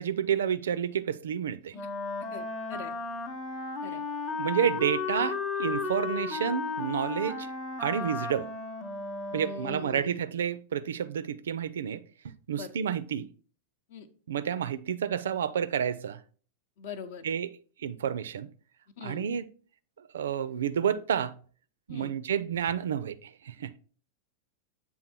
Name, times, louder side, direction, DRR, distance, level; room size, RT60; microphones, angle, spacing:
voice 1, 0.0-1.7 4.4-7.5 7.8-8.5 9.3-13.3 14.3-16.2 17.2-17.5 17.8-18.5 19.0-19.5 20.1-21.3 21.9-23.8, right 8 dB, 65° right, 0.3 m, -30 dB
Wind instrument woodwind instrument, 1.7-10.0, left 4 dB, 30° left, 1.0 m, -34 dB
voice 2, 2.3-2.9 3.8-4.0 7.9-8.1 9.4-10.2 12.5-12.7 13.9-14.1 16.8-17.3 19.0-19.3 21.9-22.1, left 5 dB, 55° left, 0.7 m, -42 dB
7.7 x 3.5 x 4.4 m
figure-of-eight pair, 90°, 0 cm